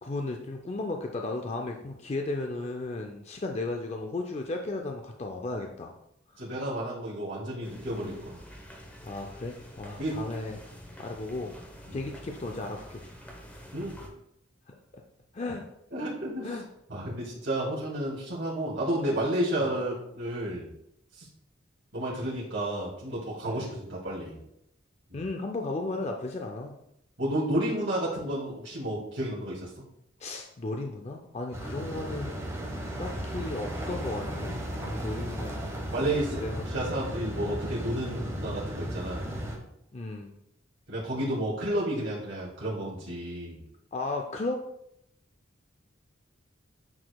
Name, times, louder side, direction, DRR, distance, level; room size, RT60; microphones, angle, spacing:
voice 1, 0.0-5.9 6.3-6.4 8.0-8.2 9.0-10.6 11.0-11.5 11.9-13.0 13.5-13.6 14.7-14.8 15.3-15.6 16.4-16.6 19.6-19.7 23.5-23.7 25.1-26.7 30.2-32.3 33.0-34.6 34.9-35.8 36.4-36.7 37.4-37.6 39.9-40.3 43.9-44.7, left 2 dB, 35° left, 3 dB, 0.4 m, -35 dB
voice 2, 6.4-8.4 10.0-10.2 11.9-12.0 13.7-14.0 15.9-16.5 16.9-20.7 21.1-21.3 21.9-24.4 25.1-25.2 27.2-29.7 35.9-39.3 40.9-43.6, right 1 dB, 70° right, -8 dB, 2.4 m, -31 dB
sound 1, 7.6-14.1, equal, 10° left, 0.9 m, -47 dB
sound 2, 31.5-39.6, equal, 15° right, 1.2 m, -35 dB
9.4 x 4.9 x 2.3 m, 0.79 s
head